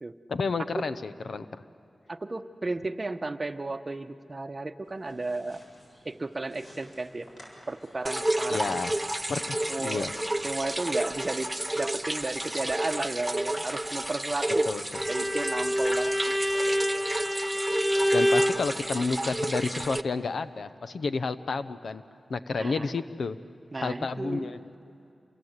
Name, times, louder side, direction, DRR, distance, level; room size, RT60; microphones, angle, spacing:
voice 1, 0.3-1.5 8.5-8.9 9.3-10.1 14.7-14.8 18.1-22.0 22.3-23.4 23.8-24.6, left 4 dB, 75° left, 12 dB, 0.8 m, -30 dB
voice 2, 2.1-5.6 6.0-7.3 7.7-8.8 9.7-10.1 10.4-14.7 15.1-16.3 22.5-22.9 23.7-24.5, right 2 dB, 35° right, 9 dB, 1.0 m, -33 dB
sound 1, 4.8-17.2, equal, 45° left, 7.3 m, -54 dB
sound 2, 8.1-20.0, right 1 dB, 10° right, 0.8 m, -31 dB
Bowed string instrument, 14.9-18.6, equal, 10° left, 2.0 m, -26 dB
28.0 x 23.0 x 8.1 m, 2.6 s
wide cardioid pair, 70°, 0 cm